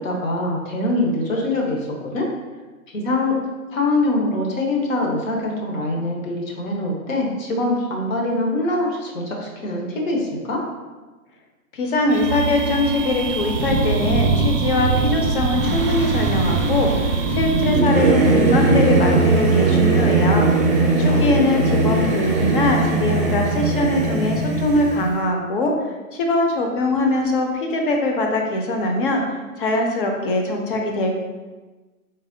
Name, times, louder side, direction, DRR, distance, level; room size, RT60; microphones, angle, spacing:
voice 1, 0.0-2.3 2.9-3.4 3.7-10.6 20.8-21.4, left 2 dB, 65° left, -1 dB, 1.3 m, -24 dB
voice 2, 11.7-16.9 17.3-20.5 21.0-25.7 26.1-29.2 29.6-31.1, left 2 dB, 40° left, 2 dB, 0.7 m, -22 dB
sound 1, 12.1-17.8, right 3 dB, 55° right, 0.6 m, -22 dB
Singing / Musical instrument, 15.5-25.1, right 3 dB, 10° right, 0.5 m, -19 dB
4.0 x 3.6 x 2.7 m, 1.2 s
hypercardioid pair, 135°, 43 cm